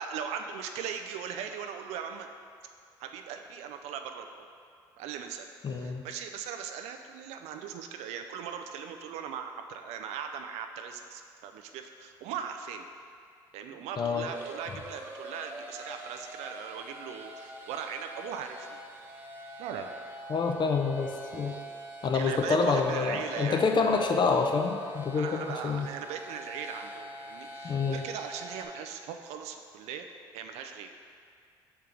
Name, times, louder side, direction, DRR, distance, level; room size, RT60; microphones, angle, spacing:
voice 1, 0.0-2.3 3.0-4.5 5.0-12.9 13.5-18.8 19.6-19.9 22.0-23.6 25.1-30.1 30.3-30.9, right 7 dB, 75° right, 6 dB, 0.4 m, -39 dB
voice 2, 5.6-6.0 14.0-14.3 20.3-21.5 22.0-25.9 27.6-28.0, left 4 dB, 45° left, 3 dB, 0.7 m, -27 dB
sound 1, 13.7-28.7, right 1 dB, 15° right, 1.0 m, -45 dB
5.5 x 4.5 x 3.8 m, 2.2 s
hypercardioid pair, 60°, 11 cm